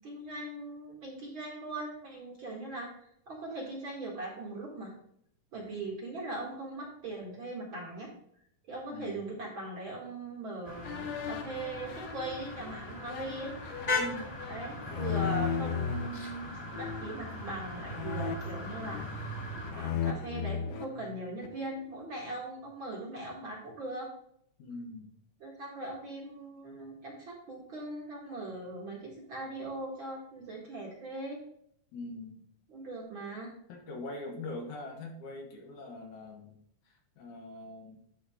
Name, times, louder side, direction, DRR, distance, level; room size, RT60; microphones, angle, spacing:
voice 1, 0.0-5.0 5.5-8.1 8.7-13.5 14.5-19.3 19.7-24.1 25.4-31.4 32.7-33.5, right 2 dB, 45° right, -3 dB, 2.1 m, -40 dB
voice 2, 8.9-9.2 14.0-14.4 24.6-25.1 31.9-32.4 33.7-36.6 36.8-38.0, left 2 dB, 70° left, 1 dB, 2.6 m, -42 dB
sound 1, 10.6-19.7, left 1 dB, 30° left, 1.7 m, -39 dB
sound 2, 10.8-16.1 16.7-17.2 17.9-19.4 19.7-21.6, left 7 dB, 90° left, 2.3 m, -36 dB
11.5 x 4.3 x 3.6 m, 0.69 s
omnidirectional pair, 3.8 m